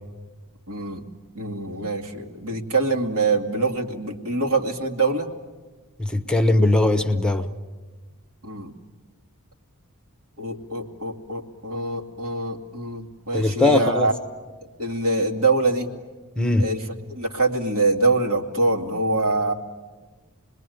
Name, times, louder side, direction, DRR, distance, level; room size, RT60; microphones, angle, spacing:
voice 1, 0.7-1.0 1.3-5.3 8.4-8.7 10.4-14.1 14.8-15.9 16.6-19.5, right 3 dB, 75° right, 2 dB, 2.4 m, -24 dB
voice 2, 6.0-7.5 13.3-14.1 16.4-16.7, left 2 dB, 5° left, 8 dB, 0.9 m, -20 dB
27.5 x 21.0 x 9.3 m, 1.3 s
head